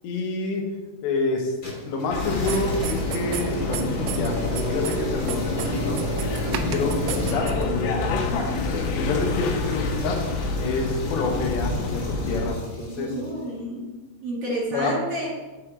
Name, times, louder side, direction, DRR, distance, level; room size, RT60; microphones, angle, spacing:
voice 1, 0.0-0.6 1.0-1.5 1.9-6.0 6.5-10.2 10.6-13.1 14.7-14.9, left 3 dB, 70° left, 0 dB, 3.2 m, -28 dB
sound 1, 1.6-13.4, right 1 dB, 25° left, 2.1 m, -34 dB
sound 2, 2.1-12.6, left 3 dB, 90° left, 4.0 m, -28 dB
sound 3, 2.5-3.4 3.7-4.3 4.6-5.0 5.3-7.7, right 11 dB, 80° right, 2.7 m, -32 dB
voice 2, 12.9-13.8 14.2-15.3, right 1 dB, 55° right, -6 dB, 1.6 m, -30 dB
8.6 x 7.4 x 4.8 m, 1.3 s
omnidirectional pair, 5.9 m